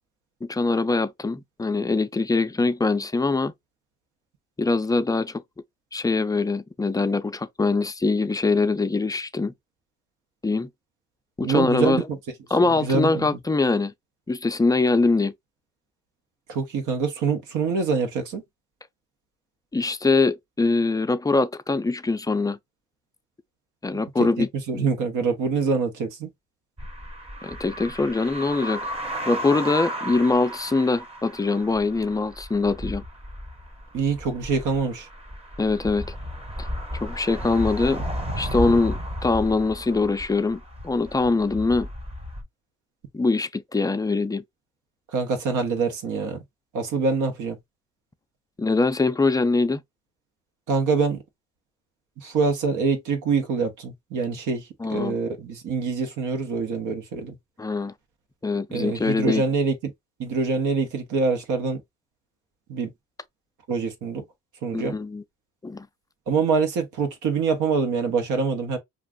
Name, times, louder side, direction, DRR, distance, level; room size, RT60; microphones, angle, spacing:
voice 1, 0.4-3.5 4.6-5.4 5.9-9.5 10.4-10.7 11.4-12.0 12.5-13.9 14.3-15.3 19.7-22.6 23.8-24.5 24.7-24.9 27.4-28.8 29.3-33.0 35.6-36.2 36.6-36.7 36.9-38.0 38.4-41.9 43.1-44.4 48.6-49.8 54.8-55.2 57.6-57.9 58.4-59.4 64.7-65.2 65.6-65.9, left 3 dB, 15° left, 0.3 m, -23 dB
voice 2, 11.4-12.0 12.8-13.3 16.5-18.4 24.2-26.3 33.9-35.1 45.1-46.4 46.7-47.6 50.7-51.2 52.2-57.3 58.7-59.9 60.2-61.8 62.7-62.9 63.7-64.2 64.6-65.0 66.3-68.8, right 5 dB, 80° right, 0.9 m, -25 dB
sound 1, 26.8-42.4, equal, 20° right, 0.7 m, -34 dB
2.5 x 2.2 x 3.4 m
cardioid pair, 90°, 30 cm